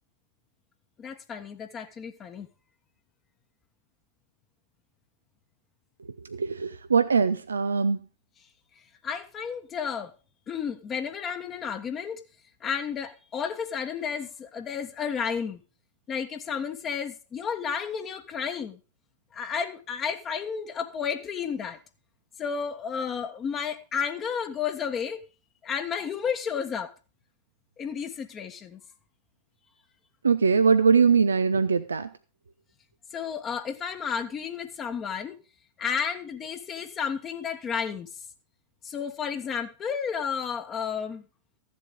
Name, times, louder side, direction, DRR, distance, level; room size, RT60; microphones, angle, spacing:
voice 1, 1.0-2.5 9.0-10.1 10.5-12.2 12.6-15.6 16.1-18.8 19.3-21.8 22.4-25.2 25.6-26.9 27.8-28.8 33.1-35.3 35.8-38.1 38.8-41.2, left 7 dB, 25° left, 1.4 m, -32 dB
voice 2, 6.3-8.0 30.2-32.1, right 5 dB, 75° right, 0.6 m, -22 dB
14.5 x 7.7 x 5.3 m
figure-of-eight pair, 90°, 0 cm